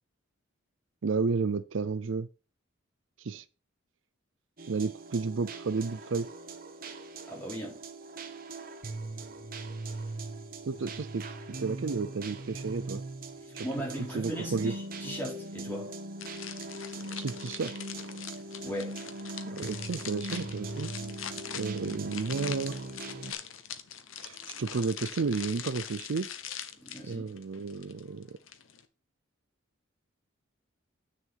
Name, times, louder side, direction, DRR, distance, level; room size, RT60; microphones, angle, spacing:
voice 1, 1.0-2.3 3.2-3.4 4.7-6.3 10.7-11.2 11.6-13.0 13.5-13.6 14.1-14.7 17.2-17.7 19.4-20.9 21.5-22.7 24.2-26.3 27.1-28.4, right 4 dB, 70° right, 0.5 m, -32 dB
sound 1, 4.6-23.3, right 2 dB, 45° right, 1.2 m, -40 dB
voice 2, 7.3-7.8 13.4-15.9 18.6-19.0 26.8-27.2, right 1 dB, 10° left, 4.0 m, -38 dB
sound 2, 16.2-28.8, left 8 dB, 85° left, 1.1 m, -43 dB
9.0 x 6.8 x 4.6 m
head